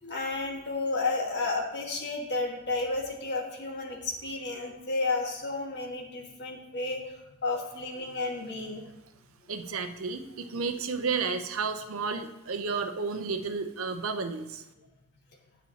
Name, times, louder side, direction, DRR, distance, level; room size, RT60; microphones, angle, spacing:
voice 1, 0.0-7.1 7.4-8.9 10.5-10.6, left 3 dB, 50° left, 1 dB, 1.6 m, -32 dB
voice 2, 9.5-14.6, right 4 dB, 70° right, 8 dB, 0.7 m, -32 dB
10.0 x 8.7 x 2.8 m, 0.90 s
head